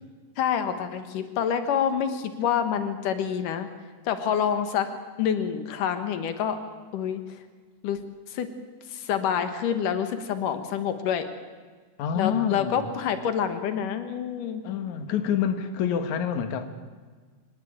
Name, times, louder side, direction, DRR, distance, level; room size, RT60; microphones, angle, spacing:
voice 1, 0.4-3.7 4.1-4.9 5.2-6.6 6.9-7.2 7.8-8.0 8.3-8.5 8.9-11.3 12.1-14.6, left 8 dB, 90° left, 9 dB, 3.1 m, -27 dB
voice 2, 12.0-12.8 14.6-16.7, left 8 dB, 70° left, 8 dB, 2.8 m, -27 dB
24.5 x 18.5 x 8.9 m, 1.5 s
omnidirectional pair, 3.6 m